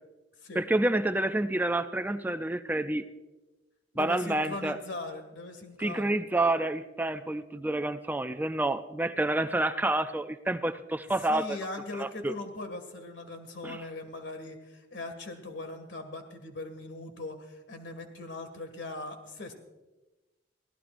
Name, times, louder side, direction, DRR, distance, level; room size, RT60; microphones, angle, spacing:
voice 1, 0.5-3.0 4.0-4.8 5.8-11.6 12.0-12.3 13.6-13.8, right 2 dB, 10° right, 9 dB, 0.4 m, -28 dB
voice 2, 3.9-6.1 11.2-19.5, left 2 dB, 80° left, 7 dB, 2.0 m, -40 dB
24.0 x 16.0 x 2.6 m, 1.1 s
head